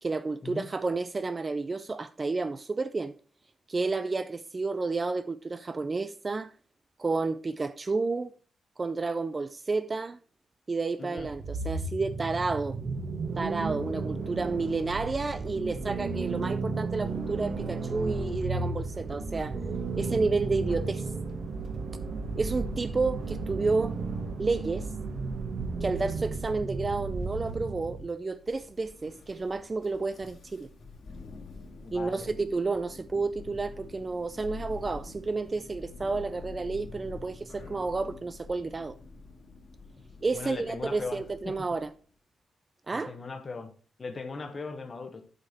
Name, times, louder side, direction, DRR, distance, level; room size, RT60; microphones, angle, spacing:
voice 1, 0.0-3.1 3.7-6.5 7.0-8.3 8.8-10.2 10.7-12.8 13.4-19.5 20.0-21.1 22.4-24.0 24.4-24.9 25.8-30.7 31.9-39.0 40.2-41.9 42.9-43.1, right 3 dB, 25° right, 0.3 m, -31 dB
voice 2, 11.0-11.3 25.9-26.1 31.8-32.3 40.3-41.7 42.9-43.7 44.0-45.2, left 4 dB, 30° left, 1.1 m, -39 dB
sound 1, 11.2-28.0, right 3 dB, 55° right, 1.4 m, -33 dB
Thunder, 28.3-41.9, left 3 dB, 60° left, 2.1 m, -47 dB
8.2 x 5.5 x 4.3 m
wide cardioid pair, 165°, 0 cm